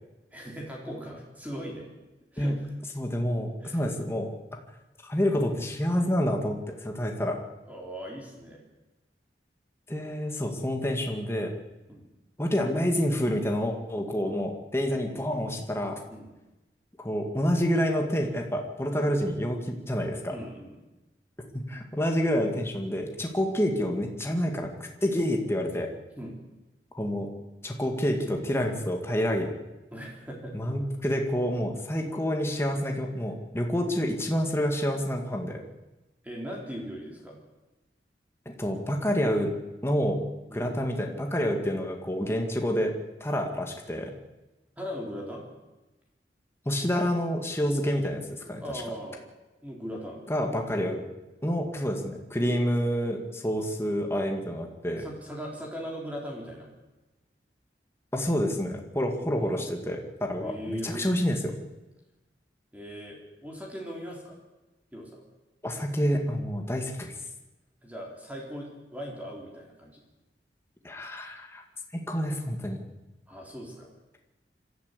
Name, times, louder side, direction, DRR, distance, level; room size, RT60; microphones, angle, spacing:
voice 1, 0.3-1.9 2.3-2.6 3.6-3.8 7.6-8.6 11.9-12.1 14.3-14.4 16.1-16.3 19.0-19.1 20.3-20.8 23.4-23.5 26.2-26.3 29.9-30.5 36.2-37.4 40.5-40.8 44.8-45.5 48.6-49.2 49.6-50.2 52.5-52.6 55.0-56.7 59.2-59.6 60.4-61.1 62.7-64.4 64.9-65.2 67.8-70.0 73.3-73.9, equal, 10° right, -1 dB, 4.1 m, -39 dB
voice 2, 2.9-4.3 5.0-7.4 9.9-11.5 12.4-16.0 17.0-20.4 21.5-25.9 27.0-27.3 27.6-29.5 30.5-35.6 38.6-39.5 39.8-40.2 40.5-42.9 43.2-44.1 46.7-48.6 50.3-51.0 51.4-55.1 58.1-61.5 65.6-67.1 70.8-71.6 71.9-72.8, equal, 15° left, 2 dB, 2.2 m, -28 dB
26.0 x 13.5 x 8.3 m, 1.1 s
head